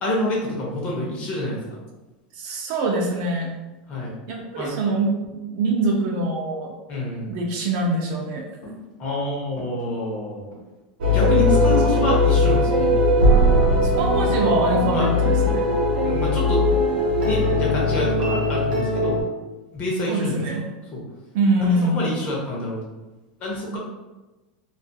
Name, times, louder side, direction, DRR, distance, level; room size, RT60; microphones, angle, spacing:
voice 1, 0.0-1.8 3.9-4.2 4.6-4.7 6.9-7.3 9.0-10.4 11.1-12.9 14.9-15.1 16.0-16.6 17.2-19.2 19.7-20.4 20.9-21.0 21.7-22.8 23.4-23.8, left 1 dB, 25° left, -3 dB, 0.7 m, -27 dB
voice 2, 2.3-3.5 4.3-6.7 7.3-8.4 11.7-11.8 13.8-15.6 20.1-20.7 21.3-22.0, right 2 dB, 40° right, 0 dB, 0.4 m, -24 dB
sound 1, 8.6-8.9 9.6-9.8 10.5-10.7 11.5-11.7 12.4-12.6 13.4-13.8 14.1-14.6 15.1-15.4, left 1 dB, 50° left, 1.0 m, -41 dB
sound 2, 11.0-19.2, left 1 dB, 90° right, 0.6 m, -19 dB
2.3 x 2.3 x 2.6 m, 1.1 s
supercardioid pair, 170°, 5 cm